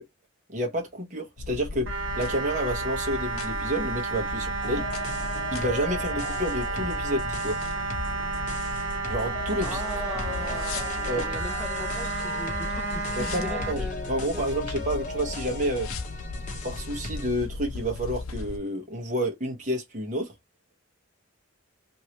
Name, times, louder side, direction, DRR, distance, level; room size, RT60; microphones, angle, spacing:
voice 1, 0.5-4.8 5.5-7.6 9.1-9.8 11.1-11.2 13.1-15.9 16.6-20.3, equal, 35° right, 1.0 m, -29 dB
sound 1, 1.4-18.6, left 3 dB, 85° left, 0.5 m, -37 dB
sound 2, 1.9-13.7, right 4 dB, 70° right, 0.6 m, -32 dB
sound 3, 4.6-17.3, left 2 dB, 40° left, 0.9 m, -38 dB
voice 2, 9.6-14.4, equal, 5° right, 0.4 m, -39 dB
3.0 x 2.7 x 2.8 m
head